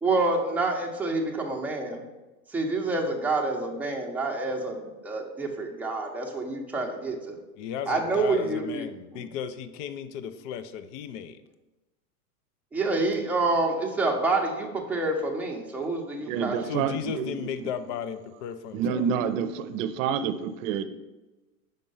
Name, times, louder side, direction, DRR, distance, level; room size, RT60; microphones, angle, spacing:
voice 1, 0.0-2.0 2.5-7.4 7.9-8.8 9.1-9.3 12.7-16.7, right 3 dB, 5° right, -1 dB, 0.7 m, -28 dB
voice 2, 7.6-11.4 16.7-19.1, left 8 dB, 50° left, 11 dB, 0.6 m, -35 dB
voice 3, 16.3-17.7 18.7-20.9, right 7 dB, 60° right, 12 dB, 0.7 m, -28 dB
5.4 x 4.4 x 5.4 m, 1.1 s
supercardioid pair, 130°, 45 cm